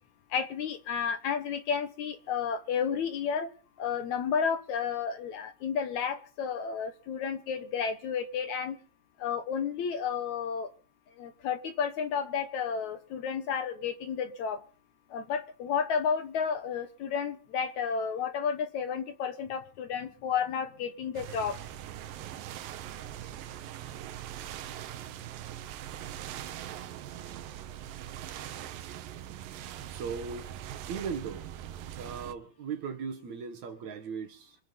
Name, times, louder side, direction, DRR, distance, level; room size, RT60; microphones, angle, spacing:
voice 1, 0.3-3.5 3.8-8.8 9.2-10.7 11.2-14.6 15.1-21.6, left 6 dB, 65° left, 2.2 m, -32 dB
sound 1, 21.1-32.3, right 11 dB, 85° right, 2.7 m, -42 dB
voice 2, 29.9-30.5 30.9-31.5 31.9-34.6, right 6 dB, 60° right, 2.9 m, -38 dB
26.0 x 8.8 x 4.2 m
omnidirectional pair, 4.0 m